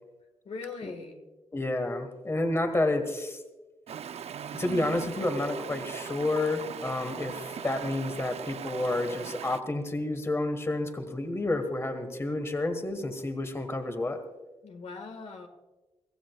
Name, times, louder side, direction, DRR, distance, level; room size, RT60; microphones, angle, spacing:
voice 1, 0.4-1.2 14.6-15.5, left 4 dB, 75° left, 5 dB, 1.7 m, -40 dB
voice 2, 1.5-3.4 4.5-14.2, left 2 dB, 25° left, 7 dB, 1.5 m, -30 dB
Stream, 3.9-9.6, right 8 dB, 70° right, 0.5 m, -39 dB
24.0 x 15.5 x 2.3 m, 1.1 s
wide cardioid pair, 115°, 11 cm